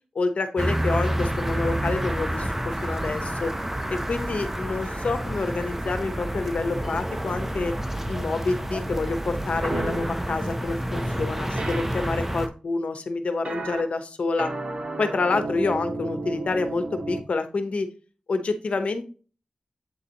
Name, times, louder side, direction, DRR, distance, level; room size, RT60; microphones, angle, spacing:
voice 1, 0.1-3.5 3.9-7.7 8.1-14.5 15.0-17.9 18.3-19.1, left 3 dB, 75° left, 9 dB, 1.0 m, -28 dB
sound 1, 0.6-12.5, right 1 dB, 15° right, 0.8 m, -29 dB
sound 2, 9.7-10.1 11.6-11.8 13.5-13.8 14.4-17.2, right 2 dB, 65° right, 1.3 m, -32 dB
8.3 x 4.1 x 2.9 m, 0.37 s
wide cardioid pair, 65°, 2 cm